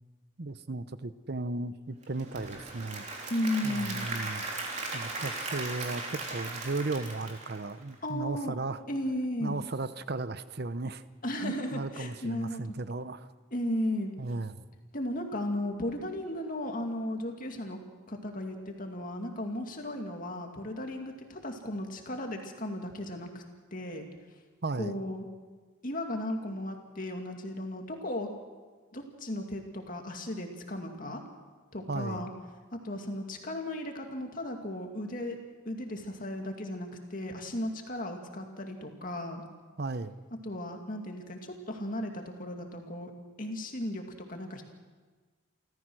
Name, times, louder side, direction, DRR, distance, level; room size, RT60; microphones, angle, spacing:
voice 1, 0.4-3.1 3.6-4.4 4.9-8.8 9.4-11.0 11.4-13.3 14.2-14.6 24.6-25.0 31.9-32.3 39.8-40.2, right 3 dB, 50° right, 14 dB, 0.8 m, -35 dB
Applause / Crowd, 2.0-8.1, right 3 dB, 35° right, 3.5 m, -38 dB
voice 2, 3.3-4.0 8.0-8.5 8.9-9.6 11.2-12.6 13.5-14.1 14.9-17.8 18.1-23.4 23.7-24.1 24.8-25.3 25.8-28.3 28.9-31.2 31.7-32.3 32.7-35.4 35.6-39.4 40.4-43.1 43.4-44.0 44.3-44.6, left 1 dB, 40° left, 3 dB, 2.3 m, -35 dB
28.5 x 14.5 x 6.3 m, 1.4 s
head